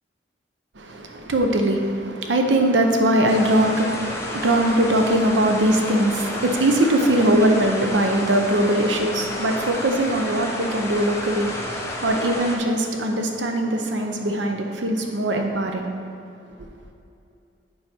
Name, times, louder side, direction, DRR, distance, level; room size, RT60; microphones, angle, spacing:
voice 1, 0.8-15.9, right 1 dB, 85° right, 0.7 m, -21 dB
sound 1, 3.3-12.6, left 1 dB, 15° left, 0.8 m, -31 dB
7.6 x 5.0 x 4.3 m
head